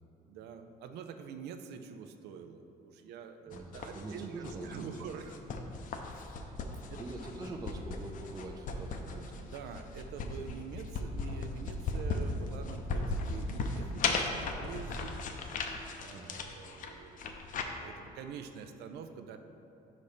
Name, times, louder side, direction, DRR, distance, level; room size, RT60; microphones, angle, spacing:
voice 1, 0.3-5.4 6.1-6.2 6.9-7.0 9.4-15.2 16.0-17.5 17.8-19.4, right 6 dB, 75° right, 8 dB, 0.5 m, -46 dB
sound 1, 3.5-17.6, left 3 dB, 50° left, 0.6 m, -37 dB
voice 2, 3.5-5.2 6.9-9.3 16.1-16.4, right 2 dB, 20° right, 2 dB, 0.4 m, -44 dB
5.6 x 4.1 x 4.9 m, 2.8 s
cardioid pair, 110°, 17 cm